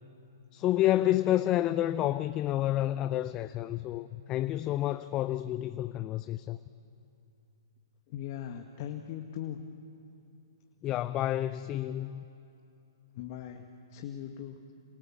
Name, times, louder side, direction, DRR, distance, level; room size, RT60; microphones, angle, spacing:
voice 1, 0.5-6.6 10.8-12.3, left 13 dB, 25° left, 0.6 m, -29 dB
voice 2, 8.1-9.6 13.1-14.6, left 10 dB, 40° left, 1.6 m, -40 dB
27.5 x 26.5 x 7.3 m
hypercardioid pair, 125°, 2 cm